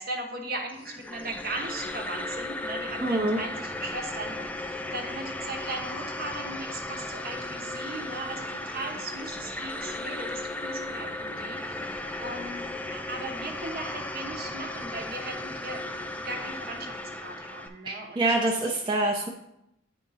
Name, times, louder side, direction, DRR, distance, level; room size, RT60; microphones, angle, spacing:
voice 1, 0.0-12.7 12.9-15.9 16.2-18.5 18.8-19.3, right 2 dB, 50° right, 2 dB, 1.0 m, -38 dB
sound 1, 0.7-17.7, left 2 dB, 5° left, 0.3 m, -36 dB
voice 2, 3.0-3.4 17.9-19.3, right 2 dB, 25° right, -2 dB, 0.7 m, -26 dB
9.4 x 3.6 x 4.1 m, 0.82 s
head